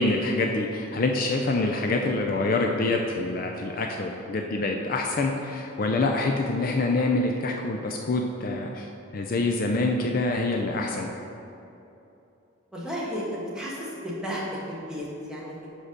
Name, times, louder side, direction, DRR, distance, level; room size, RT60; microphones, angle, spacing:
voice 1, 0.0-8.9 9.1-11.1, left 2 dB, 45° left, 2 dB, 0.4 m, -26 dB
voice 2, 12.7-15.7, equal, 5° right, -6 dB, 1.3 m, -34 dB
5.6 x 5.0 x 6.3 m, 2.9 s
head